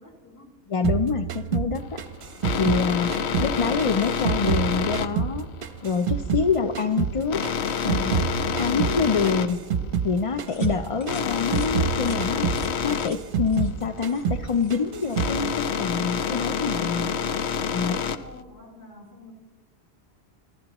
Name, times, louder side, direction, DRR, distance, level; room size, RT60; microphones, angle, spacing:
voice 1, 0.0-0.6 6.6-6.8 17.9-19.3, left 1 dB, 15° left, 1 dB, 2.7 m, -47 dB
voice 2, 0.7-2.0 2.5-3.1 3.4-5.5 5.8-7.4 7.8-8.2 8.5-9.6 10.0-12.5 12.8-17.1 17.7-18.0, left 5 dB, 40° left, 6 dB, 0.5 m, -26 dB
sound 1, 0.8-3.5 3.8-6.5 6.8-10.1 10.4-10.8 11.1-13.8 14.0-14.5 14.7-15.4, right 7 dB, 55° right, 0.8 m, -28 dB
sound 2, 1.8-18.4, left 7 dB, 75° left, 1.0 m, -28 dB
sound 3, 10.5-10.7 11.0-11.2 11.5-11.7 12.0-12.2 12.5-12.7 13.0-13.2 13.5-13.7 14.0-14.8 15.0-15.3, left 2 dB, 55° left, 2.2 m, -47 dB
26.5 x 15.0 x 3.0 m, 1.2 s
omnidirectional pair, 1.1 m